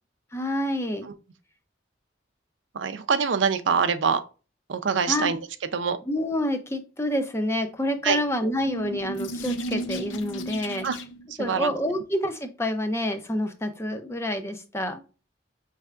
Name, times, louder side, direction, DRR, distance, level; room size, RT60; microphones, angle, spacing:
voice 1, 0.3-1.1 5.1-5.3 6.1-10.9 11.4-15.0, left 1 dB, 15° left, 0.5 m, -28 dB
voice 2, 2.7-4.2 4.7-5.4 5.7-6.0 8.0-8.2 10.8-11.0 11.4-11.7, right 6 dB, 80° right, 0.5 m, -24 dB
sound 1, 8.3-11.3, equal, 90° left, 0.6 m, -34 dB
5.4 x 3.3 x 2.4 m
head